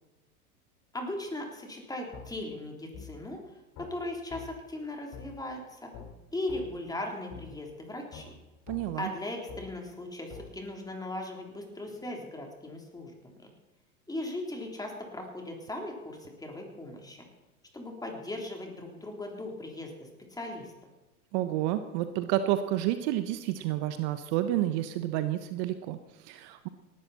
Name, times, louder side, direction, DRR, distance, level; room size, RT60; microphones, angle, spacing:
voice 1, 0.9-3.4 3.8-5.9 6.3-8.4 9.0-13.1 13.4-13.5 14.1-17.2 17.7-20.7, left 1 dB, 10° left, 2 dB, 3.4 m, -38 dB
sound 1, 2.1-2.3 2.9-3.1 3.8-3.9 4.3-4.4 5.1-5.3 5.9-6.1 6.5-6.6 7.3-7.4 8.1-8.3 8.7-8.8 9.5-9.6 10.3-10.4, left 7 dB, 40° left, 4.4 m, -44 dB
voice 2, 8.7-9.1 21.3-26.7, right 13 dB, 50° right, 11 dB, 1.0 m, -30 dB
18.5 x 12.5 x 4.2 m, 1.1 s
hypercardioid pair, 95°, 44 cm